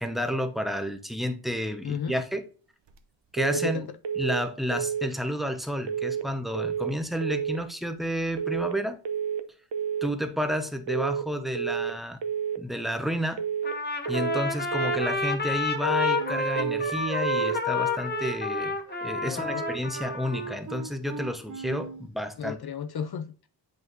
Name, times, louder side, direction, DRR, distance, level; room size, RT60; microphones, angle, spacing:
voice 1, 0.0-2.4 3.3-3.9 4.2-9.0 10.0-12.2 12.6-13.4 14.1-18.8 19.0-22.6, equal, ahead, 1.0 m, -31 dB
voice 2, 1.8-2.2 3.6-3.8 19.2-19.6 22.4-23.5, left 8 dB, 60° left, 0.6 m, -34 dB
sound 1, 3.4-3.8 4.0-4.4 4.7-5.1 5.9-6.3 6.5-6.9 7.2-7.6 8.4-8.8 9.0-9.4 9.7-10.1 10.9-11.3 11.5-11.9 12.2-12.6 13.4-13.8 14.1-14.4 14.7-15.1 15.9-16.3 16.6-17.0 17.2-17.6, right 8 dB, 70° right, 0.9 m, -30 dB
Trumpet, 13.6-20.6, left 4 dB, 20° left, 1.1 m, -29 dB
Wind instrument woodwind instrument, 16.2-22.1, right 7 dB, 40° right, 0.9 m, -39 dB
7.9 x 5.3 x 2.6 m
wide cardioid pair, 105°, 44 cm